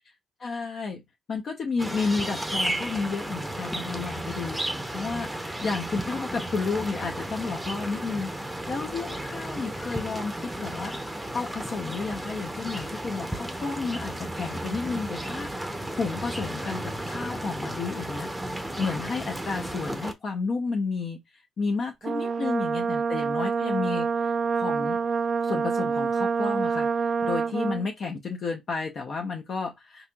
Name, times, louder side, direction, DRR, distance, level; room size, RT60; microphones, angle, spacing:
voice 1, 0.4-1.0 1.3-21.2 21.6-24.3 24.6-25.0 25.4-26.9 27.2-30.1, left 4 dB, 55° left, 0.6 m, -32 dB
sound 1, 1.8-20.1, right 1 dB, 5° right, 0.6 m, -34 dB
Brass instrument, 22.0-27.9, right 5 dB, 40° right, 0.3 m, -27 dB
4.1 x 2.8 x 2.3 m
cardioid pair, 90°, 0 cm